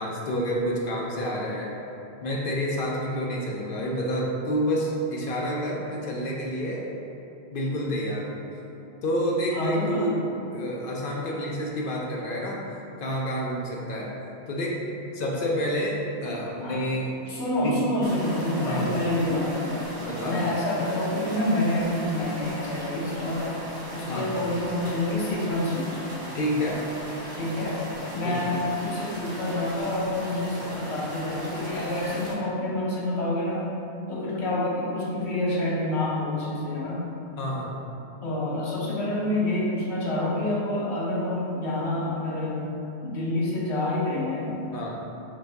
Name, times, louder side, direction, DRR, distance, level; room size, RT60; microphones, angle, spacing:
voice 1, 0.0-1.7 2.2-6.9 7.5-8.4 9.0-12.6 13.0-14.2 14.5-14.8 15.1-17.1 17.6-17.7 18.6-19.0 20.0-20.4 24.1-24.3 26.3-26.8 28.2-28.4 37.4-37.8 44.7-45.0, equal, 60° left, -2 dB, 0.7 m, -29 dB
voice 2, 9.5-10.1 11.3-11.4 16.6-16.8 17.3-19.8 20.2-23.5 23.9-25.9 27.4-27.8 28.1-33.8 34.1-37.1 38.2-42.7 43.0-44.5, left 1 dB, 80° left, -5 dB, 1.1 m, -27 dB
sound 1, 18.0-32.3, equal, 25° right, 0.6 m, -38 dB
5.1 x 2.6 x 3.3 m, 2.9 s
omnidirectional pair, 1.1 m